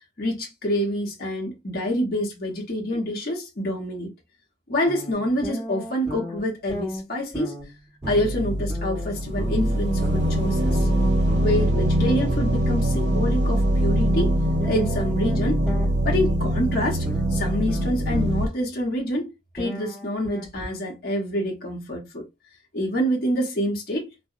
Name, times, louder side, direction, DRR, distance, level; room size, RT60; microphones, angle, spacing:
voice 1, 0.2-4.1 4.7-7.6 8.1-10.9 11.4-14.3 14.6-15.6 16.0-22.3 22.7-24.1, equal, 50° left, 0.7 m, -27 dB
sound 1, 4.9-6.4 6.7-12.5 14.6-15.9 17.1-18.3 19.6-21.0, equal, ahead, 1.3 m, -35 dB
sound 2, 8.0-18.5, right 1 dB, 70° right, 0.6 m, -23 dB
2.7 x 2.0 x 2.4 m
head